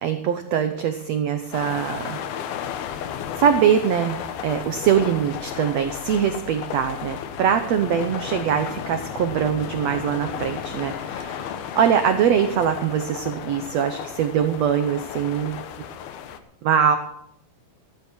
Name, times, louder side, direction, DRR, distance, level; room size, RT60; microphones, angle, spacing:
voice 1, 0.0-2.2 3.4-11.5 11.7-15.6 16.6-17.0, right 8 dB, 90° right, 8 dB, 1.4 m, -22 dB
sound 1, 1.5-16.4, left 8 dB, 90° left, 3.0 m, -34 dB
15.5 x 13.0 x 4.4 m, 0.74 s
omnidirectional pair, 4.2 m